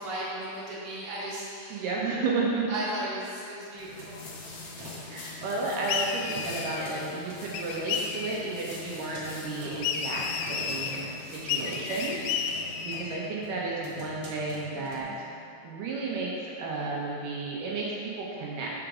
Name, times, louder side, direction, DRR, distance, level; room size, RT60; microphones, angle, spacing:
voice 1, 0.0-1.8 2.7-4.6 14.7-15.0, right 1 dB, 25° right, -9 dB, 1.8 m, -36 dB
voice 2, 1.7-2.7 5.1-15.1 15.6-16.3 16.6-18.7, right 3 dB, 75° right, -4 dB, 2.5 m, -32 dB
sound 1, 3.8-12.4, left 2 dB, 60° left, 1.3 m, -46 dB
sound 2, 3.8-15.0, left 2 dB, 60° right, 1.3 m, -45 dB
sound 3, 5.9-7.0 7.5-8.5 9.8-11.0 11.5-13.2, left 6 dB, 80° left, 1.9 m, -32 dB
13.0 x 4.9 x 3.7 m, 2.5 s
omnidirectional pair, 4.0 m